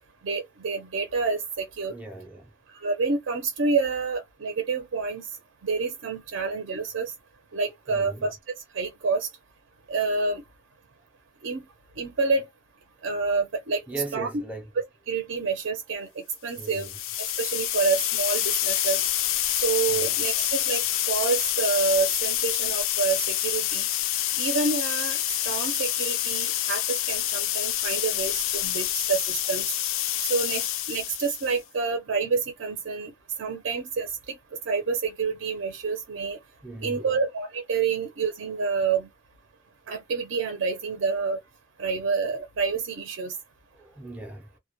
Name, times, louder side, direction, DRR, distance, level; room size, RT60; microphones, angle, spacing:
voice 1, 0.2-1.9 2.7-5.2 5.6-7.1 7.5-8.4 8.7-9.3 9.9-10.4 11.4-11.6 12.0-12.4 13.0-13.8 14.1-14.3 15.1-16.1 16.4-16.9 17.4-19.0 19.6-20.8 21.1-23.9 24.4-29.6 30.2-33.1 33.4-34.3 34.7-36.4 36.8-39.1 39.9-41.4 41.8-43.3, right 4 dB, 65° right, 0.5 m, -28 dB
voice 2, 1.9-2.5 7.9-8.3 13.9-14.7 16.6-17.0 19.9-20.2 36.6-37.2 43.7-44.6, right 2 dB, 5° right, 0.4 m, -38 dB
sound 1, 16.6-31.6, left 12 dB, 70° left, 0.4 m, -27 dB
2.1 x 2.1 x 2.8 m
head